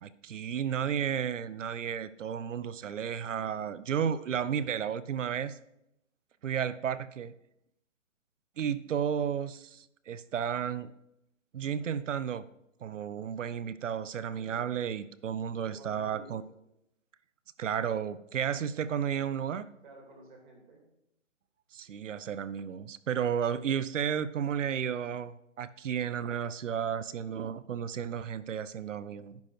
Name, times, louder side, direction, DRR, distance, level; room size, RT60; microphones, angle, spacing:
voice 1, 0.0-5.6 6.4-7.3 8.6-10.9 11.5-12.4 12.8-16.4 17.6-19.7 21.7-29.4, right 8 dB, 75° right, 17 dB, 0.6 m, -33 dB
voice 2, 15.7-16.5 19.8-20.8, right 2 dB, 40° right, 0 dB, 2.7 m, -51 dB
10.5 x 5.3 x 4.5 m, 0.83 s
hypercardioid pair, 160°, 37 cm